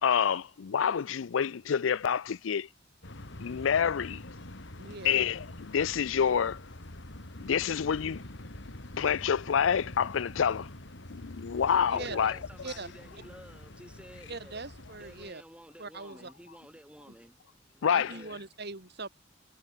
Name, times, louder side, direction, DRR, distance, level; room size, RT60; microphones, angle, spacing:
voice 1, 0.0-2.7 3.4-4.2 5.0-6.6 7.4-8.2 9.0-10.7 11.1-12.4 17.8-18.1, left 7 dB, 80° left, 0.5 m, -27 dB
sound 1, 3.0-15.3, left 1 dB, 65° left, 2.7 m, -45 dB
voice 2, 4.8-5.2 11.9-12.2 12.6-12.9 14.3-15.4 15.8-16.3 17.1-17.2 17.9-19.1, right 3 dB, 60° right, 3.9 m, -41 dB
voice 3, 11.9-14.6 15.0-17.6 18.0-18.4, equal, 5° right, 2.8 m, -51 dB
head